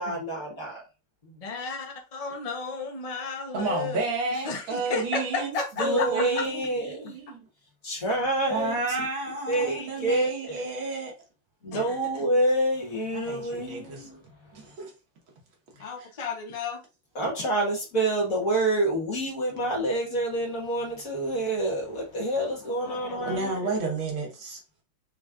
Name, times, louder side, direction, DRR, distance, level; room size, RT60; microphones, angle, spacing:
voice 1, 0.0-0.8 5.8-7.2 7.8-8.8 9.5-10.6 11.6-14.2 17.1-23.8, right 1 dB, 45° left, 1.7 m, -27 dB
voice 2, 1.2-4.0 4.4-6.4 11.7-12.2 15.8-16.8 22.9-23.4, left 4 dB, 70° left, 0.3 m, -33 dB
voice 3, 3.5-7.4 8.5-11.1 13.1-14.1 14.5-14.9 16.0-16.1 23.3-24.6, right 3 dB, 85° right, 2.1 m, -31 dB
4.9 x 3.3 x 2.4 m
omnidirectional pair, 2.1 m